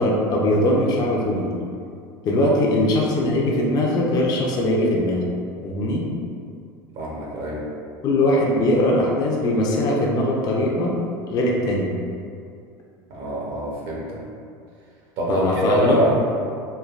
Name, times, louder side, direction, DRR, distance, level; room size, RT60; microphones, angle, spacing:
voice 1, 0.0-1.5 2.2-5.2 5.6-6.1 8.0-11.0 11.3-11.9 15.3-16.0, left 1 dB, 40° left, -2 dB, 0.4 m, -21 dB
voice 2, 6.9-7.6 13.1-14.2 15.2-16.2, right 1 dB, 60° right, -4 dB, 0.7 m, -24 dB
3.2 x 2.2 x 2.4 m, 2.4 s
supercardioid pair, 110°, 10 cm